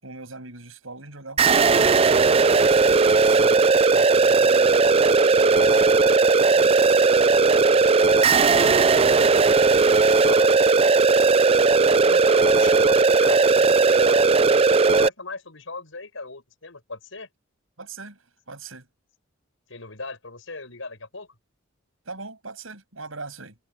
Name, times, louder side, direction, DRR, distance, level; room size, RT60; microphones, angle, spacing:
voice 1, 0.0-1.6 2.4-4.8 5.3-6.0 6.5-7.1 7.7-8.6 9.6-10.3 17.8-18.9 22.0-23.6, right 3 dB, 80° right, 7.5 m, -41 dB
sound 1, 1.4-15.1, right 4 dB, 30° right, 0.4 m, -17 dB
voice 2, 9.6-10.6 12.0-17.3 19.7-21.3, left 3 dB, 75° left, 6.0 m, -37 dB
head